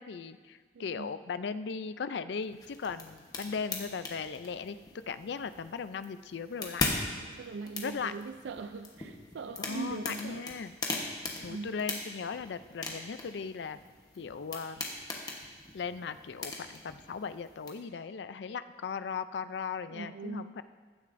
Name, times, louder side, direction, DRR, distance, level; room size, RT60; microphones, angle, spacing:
voice 1, 0.0-4.8 5.1-6.8 7.8-8.1 9.6-10.7 11.4-13.8 14.2-14.9 15.7-20.6, left 5 dB, 75° left, 13 dB, 0.4 m, -38 dB
voice 2, 0.7-1.1 7.2-10.5 11.4-11.7 19.9-20.6, right 4 dB, 85° right, 8 dB, 0.4 m, -41 dB
sound 1, 2.4-17.7, left 3 dB, 20° left, 1.1 m, -40 dB
15.0 x 10.5 x 2.6 m, 1.5 s
head